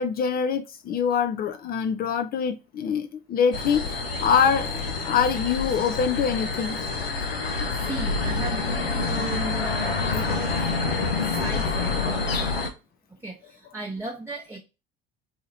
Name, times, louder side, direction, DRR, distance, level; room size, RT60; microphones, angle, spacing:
voice 1, 0.0-6.8, left 7 dB, 35° left, 0.4 m, -24 dB
sound 1, 3.5-12.7, left 4 dB, 80° left, 0.7 m, -27 dB
voice 2, 7.9-10.5 11.4-12.5 13.2-14.6, right 2 dB, 10° right, 0.8 m, -35 dB
2.9 x 2.8 x 4.0 m
figure-of-eight pair, 65°, 29 cm